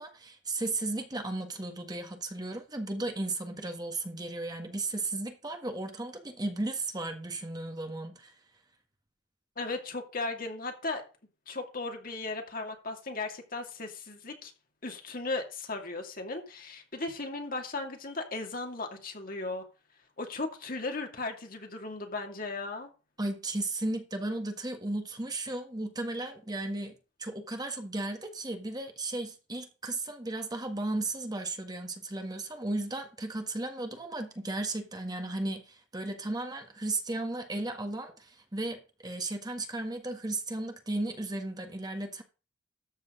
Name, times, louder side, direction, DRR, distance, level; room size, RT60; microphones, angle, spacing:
voice 1, 0.0-8.3 23.2-26.9 27.2-42.2, right 2 dB, 20° right, 1.6 m, -35 dB
voice 2, 9.6-11.0 11.5-14.5 14.8-19.6 20.2-22.9, left 3 dB, 50° left, 2.5 m, -36 dB
13.5 x 7.5 x 3.8 m
head